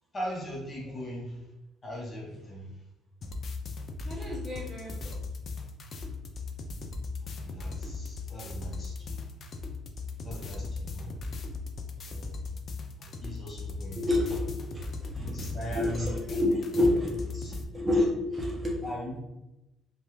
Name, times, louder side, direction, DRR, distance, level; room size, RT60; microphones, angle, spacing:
voice 1, 0.1-1.3 1.8-2.7 7.4-9.2 10.2-11.1 12.1-12.5 13.0-14.1 15.2-16.2 17.3-17.5 18.8-19.2, equal, 25° left, -3 dB, 0.9 m, -39 dB
sound 1, 3.2-17.6, left 3 dB, 45° left, 0.4 m, -38 dB
voice 2, 4.0-5.2 14.0-14.9 15.1-15.3 15.6-18.7, left 1 dB, 25° right, -2 dB, 0.7 m, -29 dB
3.1 x 2.3 x 3.0 m, 0.94 s
cardioid pair, 100°, 0 cm